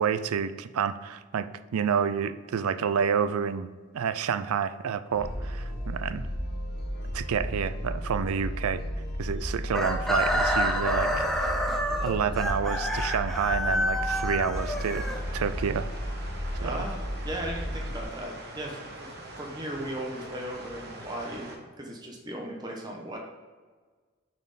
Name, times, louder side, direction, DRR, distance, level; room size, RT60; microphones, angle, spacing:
voice 1, 0.0-3.7 3.9-6.3 7.1-8.8 9.2-11.1 11.4-11.5 12.0-15.1 15.3-15.9 16.6-16.8, right 7 dB, 90° right, 12 dB, 0.4 m, -29 dB
sound 1, 5.1-18.0, equal, 50° left, 1.2 m, -34 dB
Chicken rooster, 9.7-15.7, equal, ahead, 0.4 m, -28 dB
sound 2, 14.5-21.6, right 1 dB, 50° right, 1.1 m, -43 dB
voice 2, 16.6-19.1 19.4-21.5 21.8-23.2, right 1 dB, 20° right, -1 dB, 0.9 m, -37 dB
6.6 x 4.4 x 4.1 m, 1.4 s
head